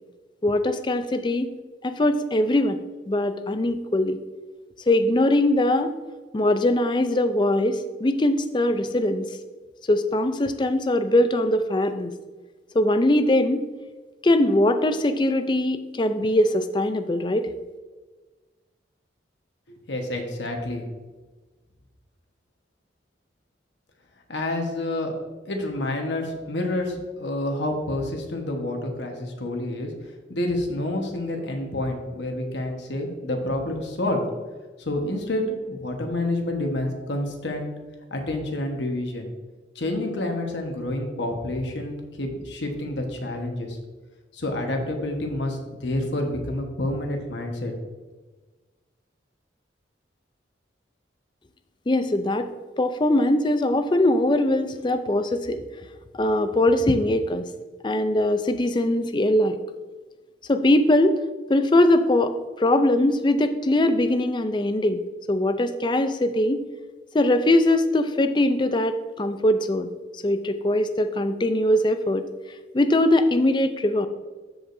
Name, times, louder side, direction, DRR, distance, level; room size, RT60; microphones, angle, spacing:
voice 1, 0.4-1.5 1.8-2.8 3.1-4.2 4.9-5.9 6.3-9.3 9.9-12.1 12.7-13.6 14.2-17.5 51.9-52.5 52.8-55.6 56.1-57.5 57.8-59.6 60.5-61.2 61.5-65.0 65.3-66.6 67.1-69.9 70.2-72.2 72.7-74.1, left 1 dB, 25° left, 9 dB, 0.4 m, -21 dB
voice 2, 19.9-20.9 24.3-25.1 25.4-29.9 30.3-34.2 34.8-37.7 38.1-39.3 39.7-43.8 44.3-47.7, left 1 dB, 75° left, 3 dB, 1.2 m, -28 dB
13.5 x 4.9 x 2.6 m, 1.3 s
head